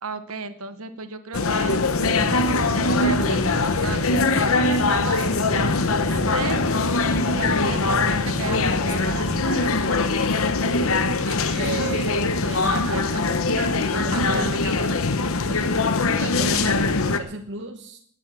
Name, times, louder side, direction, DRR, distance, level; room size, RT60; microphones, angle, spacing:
voice 1, 0.0-1.8 2.2-5.4 6.0-6.6 7.2-10.0 10.5-11.0 12.4-13.3 13.9-15.0 16.2-16.4, right 4 dB, 80° right, 11 dB, 1.2 m, -34 dB
sound 1, 1.3-17.2, left 3 dB, 75° left, 1.0 m, -22 dB
sound 2, 2.0-9.4, equal, 20° right, 1.6 m, -33 dB
voice 2, 11.5-13.0 13.3-14.5 15.5-15.7 16.2-18.0, right 3 dB, 55° right, 4 dB, 1.1 m, -34 dB
19.0 x 7.3 x 7.6 m, 0.63 s
head